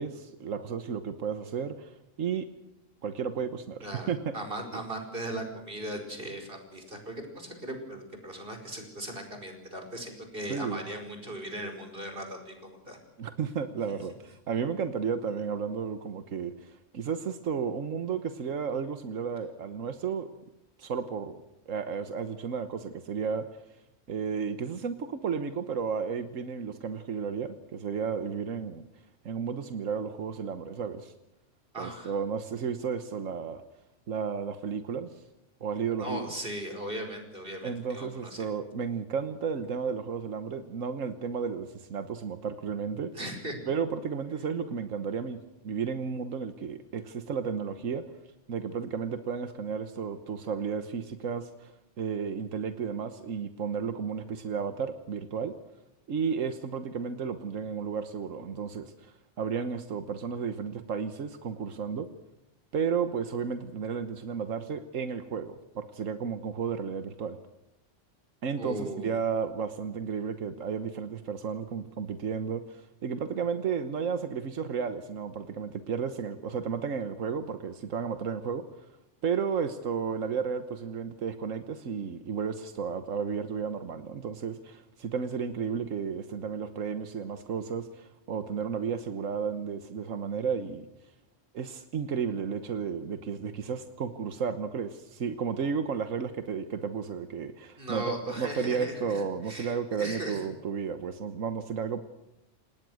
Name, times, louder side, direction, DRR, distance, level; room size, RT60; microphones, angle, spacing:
voice 1, 0.0-2.5 3.0-4.3 4.7-4.8 10.5-10.8 13.2-20.3 20.8-21.4 21.7-23.5 24.1-28.8 29.2-31.1 31.8-33.6 34.1-35.2 35.6-36.3 37.6-43.1 43.7-45.4 45.6-48.0 48.5-55.5 56.1-62.1 62.7-67.4 68.4-78.9 79.2-90.9 91.5-102.0, right 6 dB, 90° right, 9 dB, 1.5 m, -33 dB
voice 2, 4.3-13.0 13.9-14.0 31.7-32.1 36.0-38.5 43.1-43.7 68.6-69.2 97.8-100.4, right 1 dB, 45° right, 5 dB, 5.3 m, -38 dB
28.5 x 18.5 x 6.4 m, 0.92 s
omnidirectional pair, 1.3 m